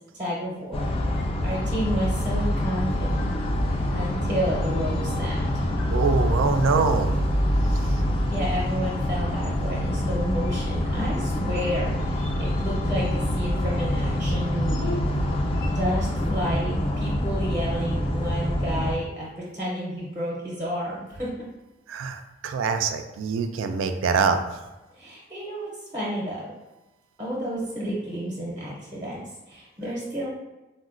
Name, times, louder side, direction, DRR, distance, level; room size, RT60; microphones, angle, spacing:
voice 1, 0.1-3.3 3.9-5.4 8.3-14.9 15.6-21.3 24.9-26.5 27.2-30.3, equal, 20° right, -6 dB, 0.6 m, -31 dB
sound 1, 0.7-18.9, left 1 dB, 30° left, 0.3 m, -25 dB
sound 2, 1.1-15.8, left 1 dB, 80° left, 0.6 m, -43 dB
voice 2, 5.9-7.2 21.9-24.4, right 5 dB, 90° right, 7 dB, 0.3 m, -24 dB
3.9 x 2.1 x 2.4 m, 1.1 s
head